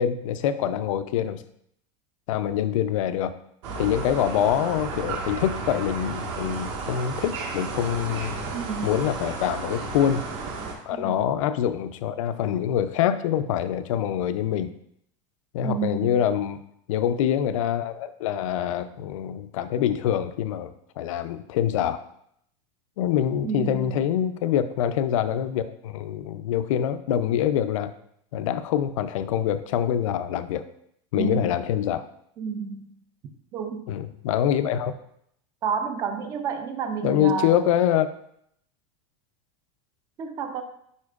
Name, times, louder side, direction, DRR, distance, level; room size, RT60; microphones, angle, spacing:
voice 1, 0.0-1.4 2.3-3.3 3.8-8.4 8.8-10.3 10.9-14.7 15.5-16.6 16.9-22.0 23.0-27.9 28.3-30.6 31.1-32.1 33.9-34.9 37.0-38.1, left 10 dB, 80° left, 11 dB, 0.5 m, -25 dB
sound 1, 3.6-10.7, right 4 dB, 60° right, 1.5 m, -33 dB
voice 2, 8.5-9.0 10.9-11.3 15.6-16.2 23.4-24.0 31.2-31.4 32.4-32.9 33.5-33.9 35.6-37.5 40.2-40.6, right 6 dB, 20° right, 7 dB, 0.4 m, -30 dB
9.6 x 4.4 x 2.4 m, 0.72 s
supercardioid pair, 175°, 17 cm